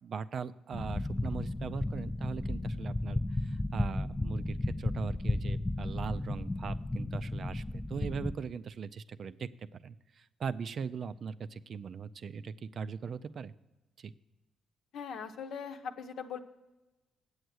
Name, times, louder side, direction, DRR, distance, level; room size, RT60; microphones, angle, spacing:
voice 1, 0.0-9.5 9.8-13.5 14.0-14.1, right 6 dB, 55° right, 13 dB, 0.4 m, -40 dB
sound 1, 0.7-8.3, left 1 dB, 10° left, 0.5 m, -34 dB
voice 2, 14.9-16.4, left 6 dB, 70° left, 7 dB, 0.8 m, -40 dB
8.1 x 7.8 x 6.2 m, 1.1 s
cardioid pair, 90°, 0 cm